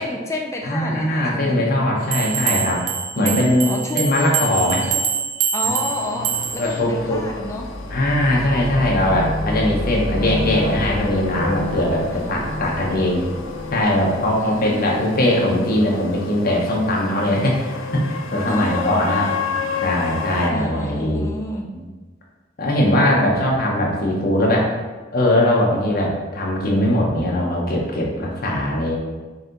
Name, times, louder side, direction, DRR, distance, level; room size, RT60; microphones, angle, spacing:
voice 1, 0.0-1.6 3.2-3.4 3.6-4.0 4.8-5.1 5.5-7.7 12.1-12.9 14.4-15.1 18.5-19.3 20.5-21.8, left 1 dB, 15° left, 0 dB, 0.4 m, -30 dB
voice 2, 0.6-2.8 3.2-4.8 6.6-7.2 7.9-13.2 13.7-19.3 19.7-21.3 22.6-24.7 25.1-29.0, left 1 dB, 50° left, -2 dB, 0.8 m, -20 dB
sound 1, 2.1-6.8, right 7 dB, 70° right, 0.4 m, -25 dB
sound 2, 5.7-20.5, left 5 dB, 85° left, 0.4 m, -32 dB
sound 3, 6.9-15.5, left 1 dB, 25° right, 1.4 m, -29 dB
4.1 x 2.7 x 3.8 m, 1.3 s
head